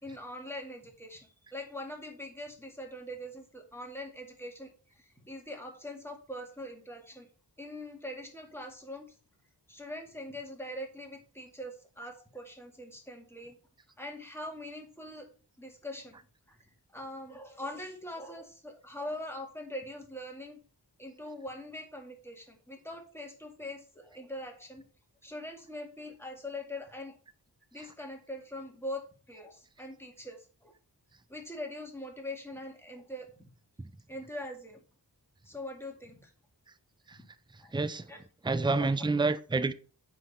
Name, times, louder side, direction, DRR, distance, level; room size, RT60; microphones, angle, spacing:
voice 1, 0.0-7.3 7.6-9.2 9.7-13.5 14.0-15.3 15.6-16.2 16.5-20.6 21.0-24.8 25.2-27.2 27.7-30.7 31.3-33.3 34.1-34.8 35.5-36.3 37.1-37.2 37.6-37.7 38.1-38.2 38.8-38.9, left 1 dB, 5° left, 2.0 m, -42 dB
voice 2, 37.7-38.1 38.4-39.7, right 3 dB, 10° right, 0.5 m, -28 dB
7.5 x 5.3 x 4.2 m
wide cardioid pair, 50°, 42 cm